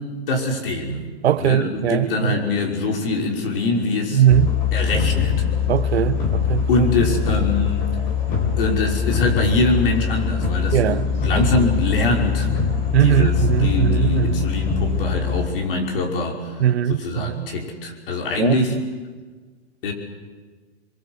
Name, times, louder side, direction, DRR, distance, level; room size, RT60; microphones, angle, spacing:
voice 1, 0.0-1.1 1.4-4.2 4.7-5.4 6.7-7.9 8.6-12.5 13.0-13.3 13.6-16.6 16.9-18.8 19.8-19.9, left 2 dB, 55° left, 5.5 m, -23 dB
voice 2, 1.2-2.3 4.1-4.5 5.7-6.7 10.7-11.7 12.9-14.5 16.6-17.5 18.4-18.8, right 11 dB, 70° right, 1.1 m, -20 dB
sound 1, 4.3-15.5, left 6 dB, 30° left, 4.2 m, -22 dB
27.0 x 23.0 x 8.0 m
hypercardioid pair, 160°, 33 cm